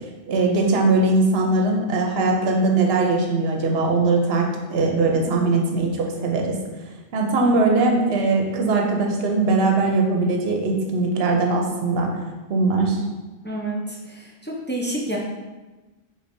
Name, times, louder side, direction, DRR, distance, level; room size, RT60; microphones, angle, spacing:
voice 1, 0.3-6.6 7.1-12.1 12.5-13.0, right 3 dB, 65° right, 1 dB, 0.9 m, -20 dB
voice 2, 13.4-15.2, right 1 dB, 15° left, -4 dB, 0.5 m, -29 dB
5.0 x 3.8 x 2.6 m, 1.2 s
omnidirectional pair, 1.1 m